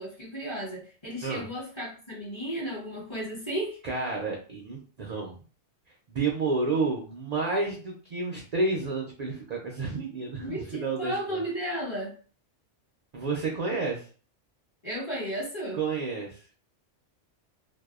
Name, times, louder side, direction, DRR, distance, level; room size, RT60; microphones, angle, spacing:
voice 1, 0.0-3.8 10.4-12.1 14.8-15.8, right 1 dB, 30° left, -5 dB, 0.7 m, -34 dB
voice 2, 3.8-5.3 6.1-11.4 13.1-14.0 15.7-16.4, right 3 dB, 65° right, -1 dB, 0.4 m, -30 dB
2.6 x 2.0 x 2.3 m, 0.41 s
omnidirectional pair, 1.2 m